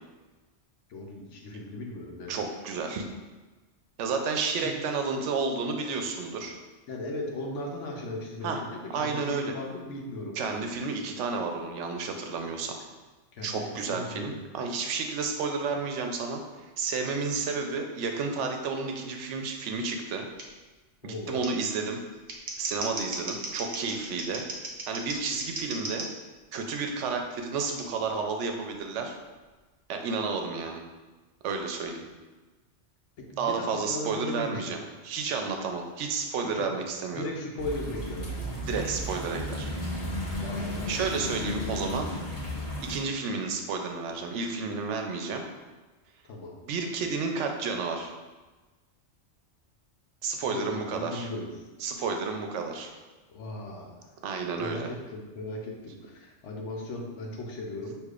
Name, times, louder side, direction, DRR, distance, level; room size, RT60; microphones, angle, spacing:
voice 1, 0.9-2.4 4.5-4.7 6.9-10.7 13.3-14.4 21.0-21.4 33.2-34.8 36.4-36.7 37.1-38.6 40.4-41.0 46.3-46.5 50.4-51.5 53.3-54.1 54.6-58.0, left 1 dB, 85° left, 0 dB, 1.1 m, -37 dB
voice 2, 2.3-3.0 4.0-6.6 8.4-8.6 8.9-9.5 10.4-12.8 13.4-16.4 16.8-20.3 21.0-22.0 22.6-24.4 24.9-26.1 26.5-29.1 29.9-30.8 31.4-32.1 33.4-37.2 38.5-39.7 40.9-42.1 42.8-45.4 46.6-48.1 50.2-51.3 51.8-52.9 54.2-54.9, right 4 dB, 80° right, 4 dB, 0.9 m, -31 dB
Scissors, 20.4-20.5 21.4-21.5 22.1-26.1 27.6-27.8, right 2 dB, 55° right, 0.8 m, -36 dB
sound 1, 37.6-43.0, equal, 25° left, 1.4 m, -34 dB
6.4 x 2.8 x 2.4 m, 1.2 s
omnidirectional pair, 1.2 m